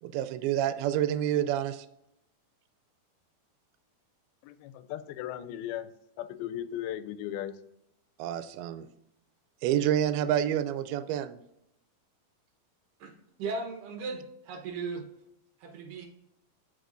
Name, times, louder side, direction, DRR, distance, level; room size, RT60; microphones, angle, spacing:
voice 1, 0.0-1.9 8.2-8.9 9.6-11.4, right 11 dB, 90° right, 13 dB, 2.5 m, -28 dB
voice 2, 4.4-5.9 6.2-7.5, left 11 dB, 85° left, 13 dB, 2.4 m, -37 dB
voice 3, 13.4-15.1 15.6-16.1, right 4 dB, 70° right, 2 dB, 2.5 m, -36 dB
12.5 x 4.8 x 2.6 m, 0.81 s
omnidirectional pair, 4.3 m